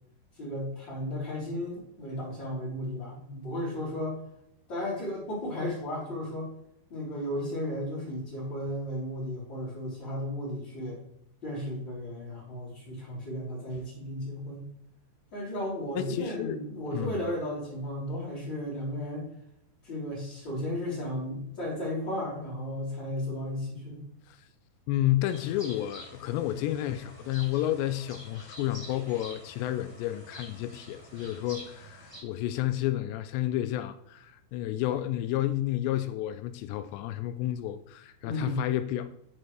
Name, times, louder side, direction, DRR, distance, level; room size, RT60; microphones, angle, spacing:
voice 1, 0.4-4.2 4.7-6.5 6.9-11.0 11.4-14.7 15.3-19.3 19.8-24.0 38.2-38.6, left 1 dB, 25° left, 3.9 m, -34 dB
voice 2, 16.0-16.6 16.9-17.3 24.3-24.5 24.9-39.1, left 13 dB, 85° left, 2.6 m, -31 dB
sound 1, 25.3-32.2, equal, 5° right, 2.9 m, -48 dB
10.5 x 8.4 x 3.3 m
omnidirectional pair, 5.2 m